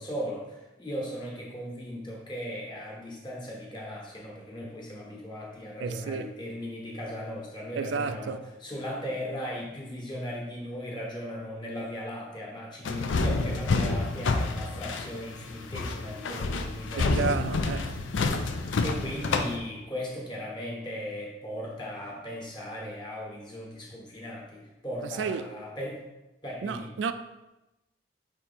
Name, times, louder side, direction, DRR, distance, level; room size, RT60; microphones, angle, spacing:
voice 1, 0.0-17.3 18.8-26.0 26.4-26.9, equal, 25° left, 1.3 m, -37 dB
voice 2, 5.8-6.3 7.7-8.4 17.0-18.1 25.2-25.4 26.6-27.1, right 5 dB, 75° right, 0.3 m, -31 dB
sound 1, 12.8-19.6, left 3 dB, 90° left, 0.5 m, -28 dB
5.9 x 3.7 x 4.3 m
head